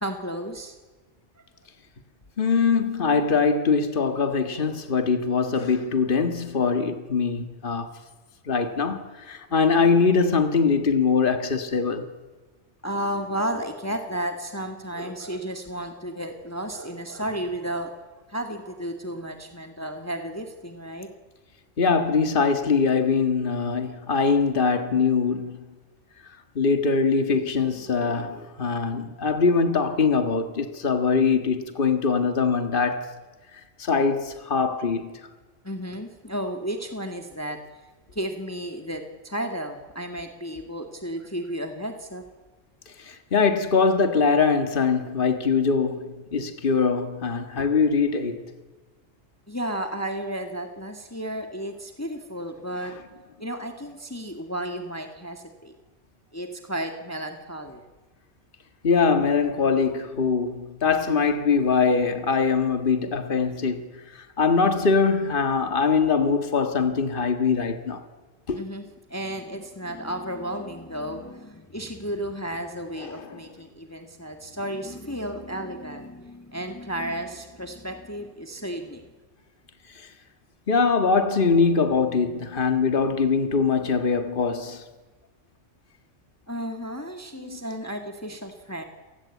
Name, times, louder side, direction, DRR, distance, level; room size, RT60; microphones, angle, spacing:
voice 1, 0.0-0.8 9.5-9.9 12.8-21.1 35.6-37.6 38.1-42.2 49.5-52.9 53.4-55.7 56.3-57.8 68.5-79.0 86.5-88.8, right 1 dB, 10° left, 1.9 m, -33 dB
voice 2, 2.4-7.9 8.5-12.1 21.8-25.6 26.6-33.1 33.8-35.2 43.0-48.4 58.8-63.9 64.4-68.0 68.5-68.6 73.1-73.3 80.7-84.8 87.4-87.6, left 5 dB, 45° left, 1.9 m, -22 dB
28.5 x 19.0 x 8.4 m
omnidirectional pair, 1.3 m